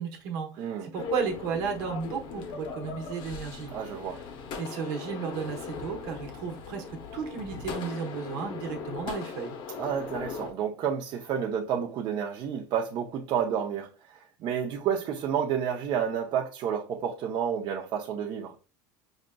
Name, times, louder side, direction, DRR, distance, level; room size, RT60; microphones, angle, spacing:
voice 1, 0.0-3.7 4.6-9.6, right 6 dB, 70° right, 1.0 m, -34 dB
voice 2, 0.6-0.9 3.7-4.2 9.8-18.5, right 8 dB, 40° right, 0.6 m, -30 dB
sound 1, 0.9-10.5, left 5 dB, 45° left, 0.7 m, -39 dB
5.1 x 2.5 x 2.2 m
supercardioid pair, 145°, 12 cm